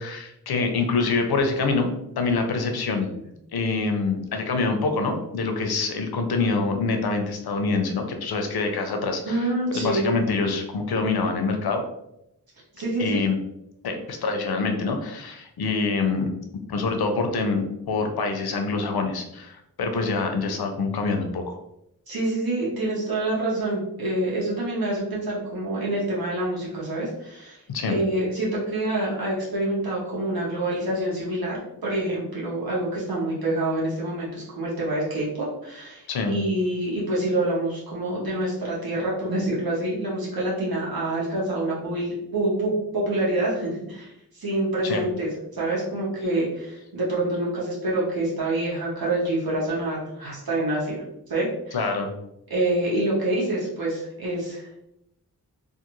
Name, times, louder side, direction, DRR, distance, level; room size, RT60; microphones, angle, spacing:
voice 1, 0.0-1.9 2.2-3.1 3.5-11.8 13.0-13.4 13.8-16.3 16.7-21.6 27.7-28.0 36.1-36.4 44.8-45.0 51.7-52.1, left 4 dB, 90° left, 5 dB, 0.6 m, -25 dB
voice 2, 9.2-10.1 12.7-13.2 22.1-27.6 27.9-51.0 51.3-51.9 52.5-54.8, right 1 dB, 75° right, -5 dB, 1.0 m, -27 dB
2.5 x 2.4 x 2.9 m, 0.81 s
wide cardioid pair, 60°, 37 cm